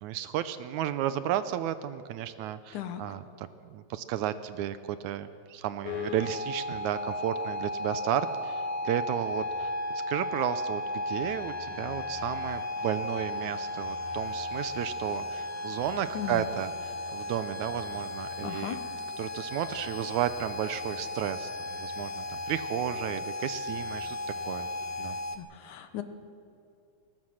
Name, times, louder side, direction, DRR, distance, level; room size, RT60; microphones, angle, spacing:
voice 1, 0.0-9.7 10.1-18.8 19.2-24.7 25.0-25.2, right 11 dB, 85° right, 12 dB, 2.1 m, -33 dB
sound 1, 5.8-25.4, left 2 dB, 60° left, 1.7 m, -35 dB
voice 2, 16.1-16.5 18.4-18.8 25.3-26.0, left 10 dB, 90° left, 9 dB, 2.6 m, -36 dB
21.5 x 20.5 x 6.4 m, 2.5 s
omnidirectional pair, 3.4 m